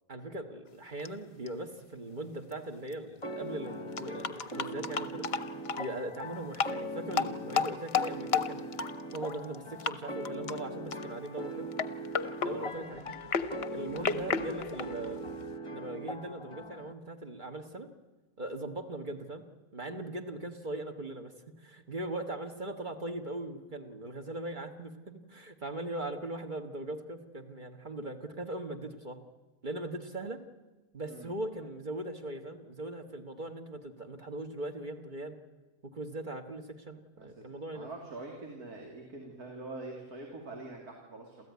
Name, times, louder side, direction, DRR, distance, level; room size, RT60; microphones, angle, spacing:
voice 1, 0.1-5.3 5.8-8.7 9.1-11.7 12.4-13.0 13.7-15.2 15.7-17.9 18.4-19.4 19.7-29.2 29.6-30.4 30.9-35.4 35.8-37.9, right 1 dB, 35° right, 5 dB, 1.6 m, -40 dB
sound 1, 1.0-1.1 1.5-1.6 2.5-2.6 2.9-3.0 4.0-5.8 6.5-6.8 7.1-9.5 9.8-9.9 10.2-10.6 10.9-11.3 11.7-15.5, left 6 dB, 50° left, 1.0 m, -33 dB
sound 2, 3.2-16.9, equal, 20° left, 1.2 m, -41 dB
voice 2, 37.7-41.5, right 2 dB, 85° right, 0 dB, 3.3 m, -44 dB
28.0 x 14.5 x 9.5 m, 1.2 s
omnidirectional pair, 1.6 m